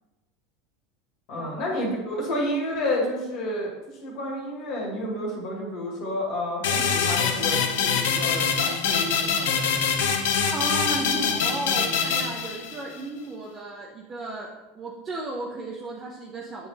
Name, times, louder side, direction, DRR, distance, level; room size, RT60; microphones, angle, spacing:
voice 1, 1.3-9.8, left 1 dB, 55° left, -2 dB, 1.9 m, -30 dB
sound 1, 6.6-13.0, left 6 dB, 70° left, 0.8 m, -24 dB
voice 2, 10.5-14.5 14.7-16.7, right 2 dB, 35° right, -2 dB, 0.9 m, -34 dB
7.0 x 3.7 x 4.1 m, 1.1 s
hypercardioid pair, 85°, 0 cm